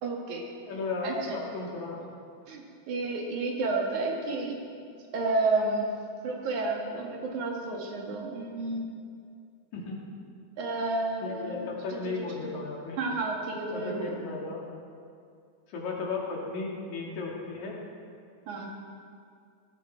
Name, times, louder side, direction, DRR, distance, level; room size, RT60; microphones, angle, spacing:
voice 1, 0.0-0.5 1.0-1.4 2.5-4.6 5.1-5.9 6.2-8.9 10.6-11.7 11.9-12.2 13.0-14.2 18.5-18.7, right 3 dB, 90° right, 0 dB, 3.2 m, -31 dB
voice 2, 0.7-2.0 9.7-10.1 11.2-13.0 13.7-14.6 15.7-17.7, left 3 dB, 80° left, -2 dB, 3.5 m, -35 dB
17.5 x 13.5 x 4.5 m, 2.3 s
omnidirectional pair, 3.3 m